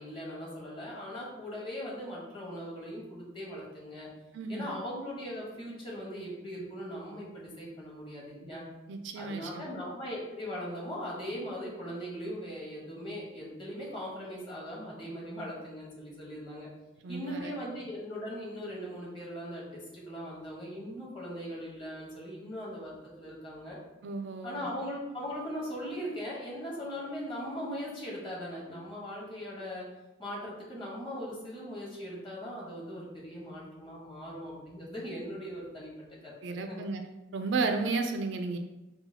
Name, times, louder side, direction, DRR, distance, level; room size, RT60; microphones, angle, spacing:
voice 1, 0.0-4.1 4.5-8.6 9.1-16.7 17.1-23.8 24.4-29.8 30.2-35.9 36.2-36.8, equal, 25° left, -5 dB, 1.1 m, -39 dB
voice 2, 4.3-4.8 8.9-9.8 17.0-17.5 24.0-24.7 36.4-37.0 37.3-38.6, right 3 dB, 65° right, 5 dB, 0.4 m, -33 dB
5.4 x 2.3 x 2.7 m, 1.0 s
head